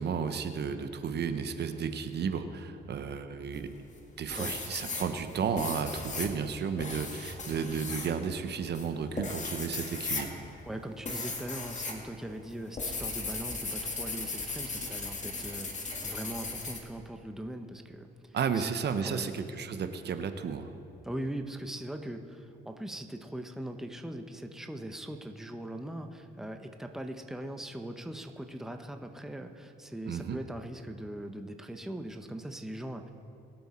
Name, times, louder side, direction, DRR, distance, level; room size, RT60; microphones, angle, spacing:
voice 1, 0.0-3.7 4.2-10.4 18.3-20.7 30.1-30.4, right 6 dB, 60° right, 8 dB, 0.9 m, -33 dB
sound 1, 3.5-4.0 4.3-12.0 12.3-16.8, left 3 dB, 35° left, 1.9 m, -37 dB
voice 2, 10.7-18.6 19.0-19.3 21.0-33.1, right 1 dB, ahead, 5 dB, 0.9 m, -40 dB
22.5 x 7.8 x 4.3 m, 2.5 s
cardioid pair, 90°, 20 cm